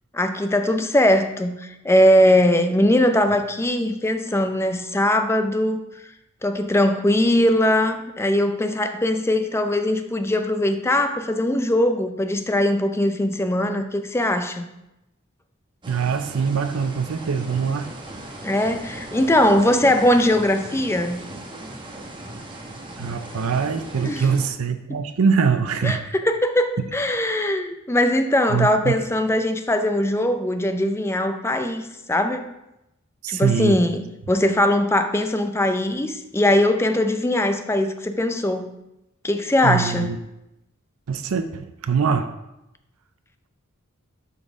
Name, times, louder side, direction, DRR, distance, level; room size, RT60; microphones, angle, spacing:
voice 1, 0.1-5.8 6.4-14.6 18.4-21.2 24.0-24.2 24.9-25.0 25.8-26.0 26.2-32.5 33.3-38.7 39.2-40.1, left 1 dB, 10° left, 8 dB, 0.5 m, -20 dB
sound 1, 15.8-24.5, right 1 dB, 25° right, 1.0 m, -38 dB
voice 2, 15.9-17.9 23.0-26.0 28.5-29.0 33.2-33.8 39.6-40.2 41.1-42.3, right 6 dB, 85° right, 9 dB, 0.5 m, -23 dB
12.0 x 4.2 x 3.7 m, 0.90 s
head